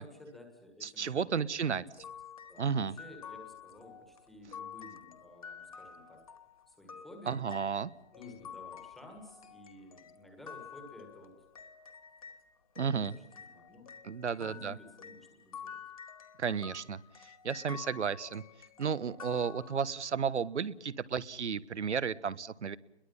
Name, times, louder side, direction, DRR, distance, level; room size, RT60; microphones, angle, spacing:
voice 1, 0.0-1.9 2.5-6.2 6.7-7.4 8.1-11.3 13.0-13.9 14.4-15.8, left 1 dB, ahead, 2 dB, 1.6 m, -53 dB
voice 2, 0.8-1.8 2.6-3.0 7.3-7.9 12.8-13.2 14.0-14.7 16.4-18.4 18.8-22.8, right 6 dB, 85° right, 17 dB, 1.3 m, -33 dB
sound 1, 1.9-12.4 12.8-20.1, left 7 dB, 30° left, 1.4 m, -50 dB
29.0 x 22.0 x 5.5 m, 0.91 s
hypercardioid pair, 175°, 34 cm